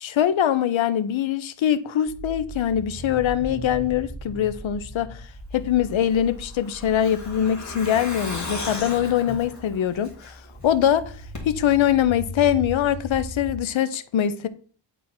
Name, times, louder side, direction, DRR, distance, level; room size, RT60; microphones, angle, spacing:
voice 1, 0.0-5.2 5.5-11.0 11.4-14.5, left 10 dB, 85° left, 0.7 m, -23 dB
sound 1, 2.1-13.5, equal, 10° left, 3.3 m, -39 dB
Keyboard (musical), 3.1-6.0, right 5 dB, 15° right, 1.1 m, -51 dB
Truck, 5.9-10.6 10.9-11.0 11.3-11.4, left 2 dB, 40° left, 2.0 m, -36 dB
8.9 x 3.6 x 4.3 m
wide cardioid pair, 135°, 46 cm